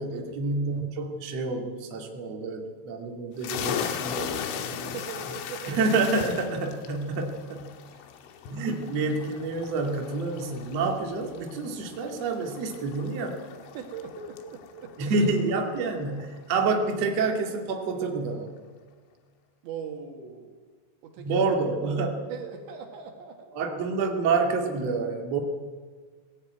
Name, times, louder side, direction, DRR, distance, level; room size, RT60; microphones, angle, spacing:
voice 1, 0.0-4.9 5.7-7.7 8.5-13.4 15.0-18.6 21.2-22.2 23.5-25.4, right 3 dB, 45° right, 1 dB, 2.6 m, -28 dB
sound 1, 3.4-16.8, left 8 dB, 80° left, 3.9 m, -38 dB
voice 2, 4.7-5.8 7.9-8.1 13.7-15.1 19.6-20.6 21.0-21.5 21.8-22.0 22.3-23.5, right 6 dB, 70° right, 3 dB, 4.2 m, -40 dB
19.0 x 17.0 x 9.3 m, 1.5 s
omnidirectional pair, 5.6 m